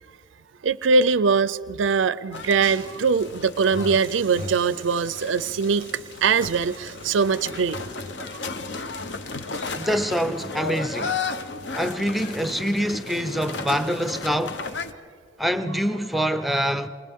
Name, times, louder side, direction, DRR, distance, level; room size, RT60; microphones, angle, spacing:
voice 1, 0.6-5.9 6.2-7.8, right 5 dB, 80° right, 0.5 m, -22 dB
sound 1, 2.3-14.9, left 4 dB, 65° left, 0.9 m, -34 dB
voice 2, 9.7-11.2 11.7-14.6 15.4-16.9, equal, ahead, 0.7 m, -25 dB
28.0 x 28.0 x 3.6 m
head